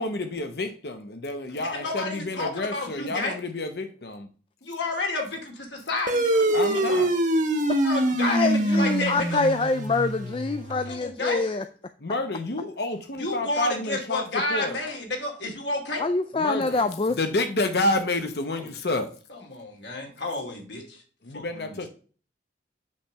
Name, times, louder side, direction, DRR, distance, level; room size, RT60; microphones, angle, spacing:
voice 1, 0.0-4.3 6.5-7.1 12.0-14.8 16.4-16.9 17.2-19.1 21.2-21.9, left 2 dB, 60° left, 7 dB, 0.9 m, -29 dB
voice 2, 1.5-3.3 4.6-7.0 7.7-9.4 10.8-11.5 13.2-16.0 18.5-18.7 19.3-21.0 21.3-21.9, left 2 dB, 75° left, 1 dB, 2.4 m, -31 dB
sound 1, 6.1-10.9, right 1 dB, 45° right, 1.1 m, -24 dB
voice 3, 8.3-11.6 16.0-17.2, left 3 dB, 30° left, 9 dB, 0.3 m, -25 dB
8.5 x 3.4 x 6.6 m, 0.40 s
head